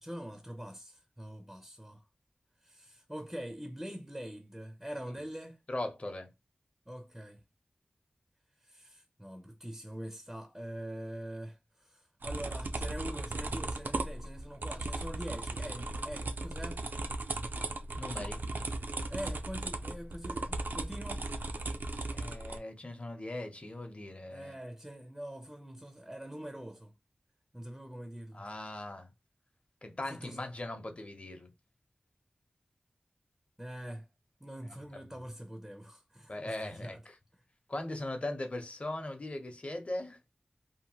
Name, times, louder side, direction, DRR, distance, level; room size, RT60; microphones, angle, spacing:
voice 1, 0.0-2.0 2.6-5.6 6.9-7.4 8.6-16.8 19.1-21.2 24.3-26.9 27.5-28.4 30.1-30.4 33.6-34.1 34.4-37.0, equal, 5° right, 0.4 m, -44 dB
voice 2, 5.7-6.3 18.0-18.4 22.1-24.6 28.3-29.1 29.8-31.5 34.6-34.8 36.3-37.2 37.7-40.3, left 1 dB, 40° left, 0.7 m, -39 dB
sound 1, 12.2-22.6, right 2 dB, 80° right, 0.4 m, -37 dB
2.8 x 2.1 x 2.8 m
wide cardioid pair, 65°, 3 cm